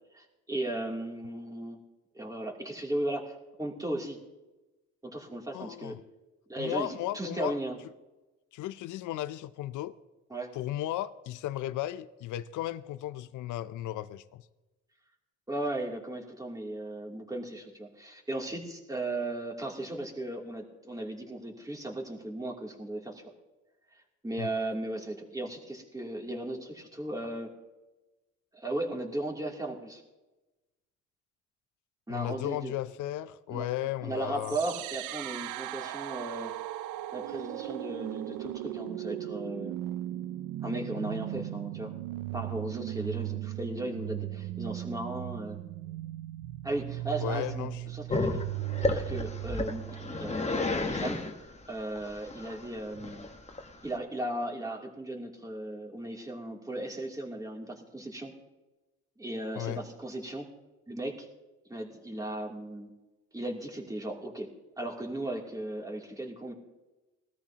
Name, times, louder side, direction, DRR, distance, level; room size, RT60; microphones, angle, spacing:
voice 1, 0.1-1.8 2.1-4.2 5.0-6.0 6.5-7.8 10.3-10.5 15.5-23.2 24.2-27.5 28.5-30.0 32.1-32.7 33.5-33.7 34.0-36.5 37.1-39.7 40.6-41.9 42.3-45.6 46.6-48.4 48.8-51.2 51.7-53.2 53.8-58.3 59.2-60.5 60.9-61.3 61.7-62.9 63.3-64.5 64.8-66.5, right 1 dB, 10° right, 2.9 m, -36 dB
voice 2, 5.5-6.0 6.6-7.5 8.5-9.9 10.5-14.4 24.4-24.5 32.1-34.6 41.3-41.4 47.2-47.8 59.6-59.8, left 14 dB, 80° left, 0.6 m, -35 dB
sound 1, 34.4-50.4, right 15 dB, 85° right, 0.5 m, -37 dB
Growling, 48.1-54.0, left 3 dB, 20° left, 1.3 m, -32 dB
20.5 x 13.5 x 2.9 m
cardioid pair, 90°, 30 cm